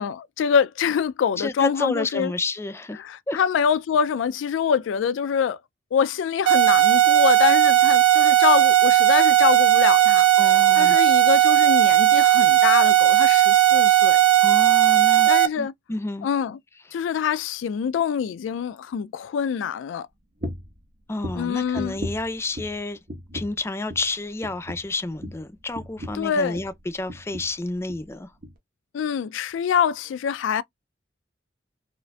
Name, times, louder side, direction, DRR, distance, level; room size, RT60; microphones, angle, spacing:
voice 1, 0.0-2.3 3.0-5.6 5.9-14.2 15.3-15.7 16.2-16.6 16.9-20.1 21.4-22.0 26.1-26.6 28.9-30.6, left 7 dB, 90° left, 0.3 m, -25 dB
voice 2, 1.4-3.4 10.4-11.0 14.4-15.3 15.6-16.3 21.1-23.0 23.3-28.3, left 2 dB, 15° left, 0.4 m, -30 dB
sound 1, 6.5-15.5, right 14 dB, 85° right, 0.6 m, -16 dB
sound 2, 20.4-20.8 21.2-22.8 23.1-23.6 23.9-24.1 24.4-26.8 27.1-27.6 27.9-28.1 28.4-28.5, equal, 50° right, 1.1 m, -36 dB
4.5 x 2.5 x 2.3 m
head